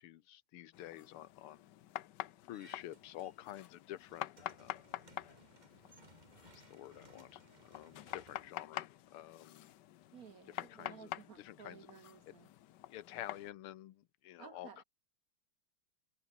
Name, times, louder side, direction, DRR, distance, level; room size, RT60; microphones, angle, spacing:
voice 1, 0.0-1.7 2.5-4.3 4.6-5.0 6.5-7.4 7.7-8.9 9.1-9.7 10.5-11.1 11.4-11.9 12.3-12.4 12.9-14.8, left 13 dB, 80° left, 1.8 m, -49 dB
sound 1, 0.7-13.5, left 13 dB, 65° left, 1.2 m, -48 dB
sound 2, 2.5-3.6 3.9-9.3, right 2 dB, 20° right, 2.3 m, -63 dB
voice 2, 10.1-12.5 14.4-14.8, right 7 dB, 55° right, 1.2 m, -55 dB
omnidirectional pair, 2.4 m